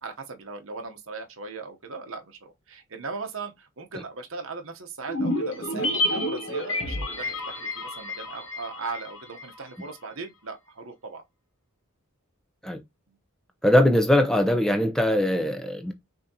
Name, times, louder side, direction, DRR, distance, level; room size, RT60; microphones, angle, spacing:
voice 1, 0.0-11.2 13.1-13.2, right 4 dB, 70° right, 0.9 m, -38 dB
sound 1, 5.1-9.6 9.8-9.9, left 1 dB, 65° left, 1.1 m, -29 dB
voice 2, 13.6-15.9, left 1 dB, 5° left, 0.6 m, -21 dB
6.1 x 2.8 x 2.7 m
head